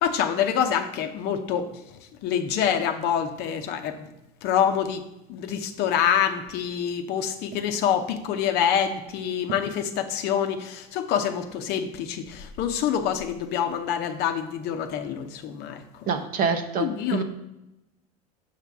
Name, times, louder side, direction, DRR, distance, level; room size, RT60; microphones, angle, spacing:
voice 1, 0.0-4.1 4.4-5.0 5.3-16.1 16.8-17.2, left 8 dB, 60° left, 7 dB, 0.8 m, -26 dB
voice 2, 16.1-17.2, right 5 dB, 45° right, 7 dB, 0.8 m, -26 dB
6.6 x 5.9 x 3.5 m, 0.91 s
supercardioid pair, 105°, 19 cm